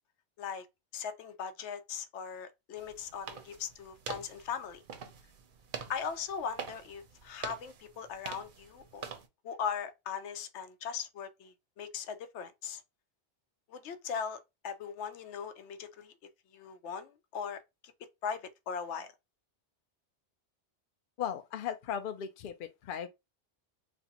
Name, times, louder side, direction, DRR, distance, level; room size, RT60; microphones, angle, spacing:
voice 1, 0.9-4.8 5.9-9.1 9.4-12.8 13.7-16.1 16.5-17.6 18.2-19.1, left 7 dB, 90° left, 0.9 m, -39 dB
sound 1, 2.8-9.3, right 6 dB, 55° right, 0.7 m, -45 dB
voice 2, 21.2-23.1, left 8 dB, 60° left, 0.6 m, -37 dB
4.1 x 2.1 x 2.8 m
omnidirectional pair, 1.1 m